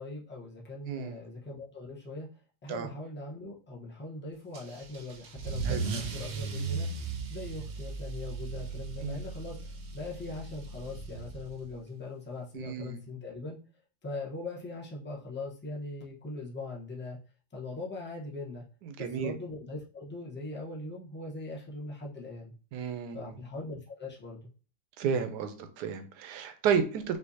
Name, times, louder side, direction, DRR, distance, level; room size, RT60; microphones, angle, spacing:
voice 1, 0.0-2.3 2.6-6.9 7.3-9.6 9.9-13.6 14.0-17.2 17.5-18.6 19.0-22.5 23.1-24.5, left 2 dB, 10° left, -3 dB, 0.5 m, -41 dB
voice 2, 0.9-1.2 2.7-2.9 5.6-5.8 9.0-9.2 12.5-13.0 18.8-19.4 22.7-23.4 25.0-27.2, right 7 dB, 85° right, 8 dB, 1.2 m, -32 dB
Car / Engine starting / Accelerating revving vroom, 4.5-11.7, right 4 dB, 60° right, 0.7 m, -37 dB
5.6 x 2.8 x 2.7 m, 0.37 s
omnidirectional pair, 1.8 m